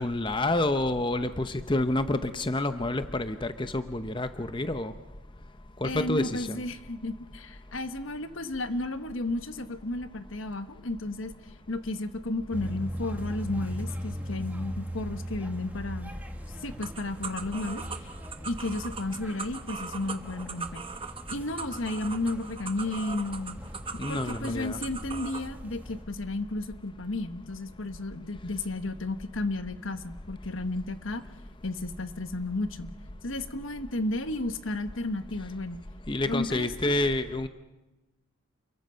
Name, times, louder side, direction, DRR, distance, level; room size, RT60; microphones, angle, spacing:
voice 1, 0.0-4.9 5.8-6.6 24.0-24.8 36.1-37.5, left 2 dB, 25° left, 10 dB, 0.8 m, -28 dB
voice 2, 5.8-11.3 11.7-16.1 16.6-17.8 18.5-20.8 21.3-23.6 24.1-31.2 31.6-32.9 33.2-35.8 36.2-36.9, left 2 dB, 70° left, 10 dB, 1.3 m, -33 dB
sound 1, 12.5-26.0, equal, 10° right, 1.7 m, -40 dB
sound 2, 16.8-25.5, right 5 dB, 25° right, 1.2 m, -40 dB
29.0 x 22.5 x 5.6 m, 1.1 s
head